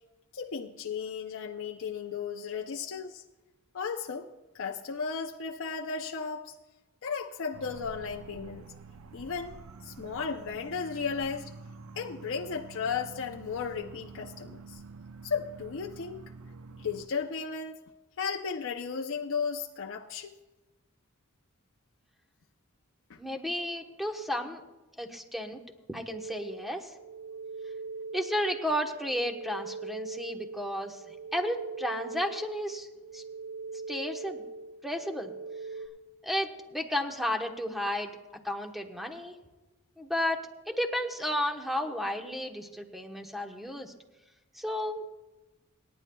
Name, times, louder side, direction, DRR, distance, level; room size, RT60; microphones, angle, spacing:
voice 1, 0.3-3.2 3.7-4.3 4.5-6.6 7.0-8.6 9.1-9.6 9.8-11.5 12.0-14.8 15.2-16.2 16.8-17.8 18.2-20.3 23.1-23.2, left 5 dB, 60° left, 3 dB, 0.6 m, -35 dB
sound 1, 7.5-17.1, right 4 dB, 70° right, 0.6 m, -48 dB
voice 2, 23.2-24.6 25.0-25.6 25.9-26.9 28.1-31.0 31.3-32.9 33.1-33.2 33.9-34.4 34.8-35.3 36.2-38.1 38.4-39.4 40.0-43.9 44.5-45.1, equal, ahead, 4 dB, 1.0 m, -33 dB
sound 2, 26.1-35.9, right 4 dB, 30° right, 3.9 m, -41 dB
28.0 x 10.5 x 2.3 m, 1.1 s
head